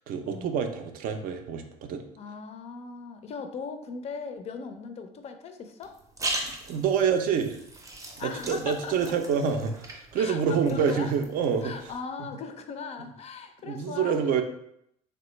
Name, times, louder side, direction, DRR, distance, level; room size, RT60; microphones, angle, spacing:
voice 1, 0.1-2.0 6.7-7.6 8.2-11.7 13.6-14.4, right 6 dB, 65° right, 6 dB, 0.4 m, -27 dB
voice 2, 2.2-6.0 8.2-9.1 10.1-11.1 11.6-14.1, left 5 dB, 45° left, 7 dB, 0.4 m, -38 dB
sound 1, 5.8-11.9, right 2 dB, 20° right, 0.6 m, -39 dB
3.1 x 2.0 x 3.0 m, 0.74 s
cardioid pair, 105°, 16 cm